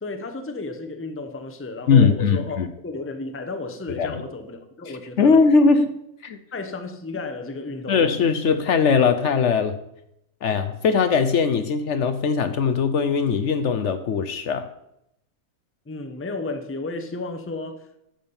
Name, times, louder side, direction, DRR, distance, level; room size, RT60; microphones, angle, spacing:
voice 1, 0.0-5.4 6.5-8.1 15.9-18.0, left 3 dB, 10° left, 7 dB, 0.7 m, -33 dB
voice 2, 1.9-2.7 3.9-4.2 4.9-5.9 6.2-6.4 7.9-9.8 10.4-14.7, left 5 dB, 65° left, 9 dB, 0.9 m, -20 dB
10.5 x 7.3 x 5.5 m, 0.80 s
omnidirectional pair, 1.4 m